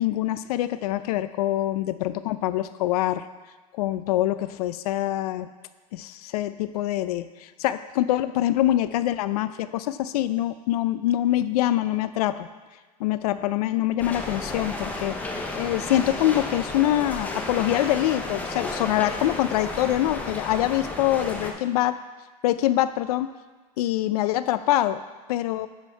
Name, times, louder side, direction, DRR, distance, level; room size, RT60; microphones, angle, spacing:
voice 1, 0.0-3.2 3.7-5.5 5.9-12.5 13.0-21.9 22.4-23.3 23.8-25.0 25.3-25.7, left 13 dB, 75° left, 13 dB, 0.4 m, -25 dB
sound 1, 14.0-21.5, left 2 dB, 10° left, 0.6 m, -32 dB
10.5 x 4.5 x 4.5 m, 1.4 s
supercardioid pair, 160°, 20 cm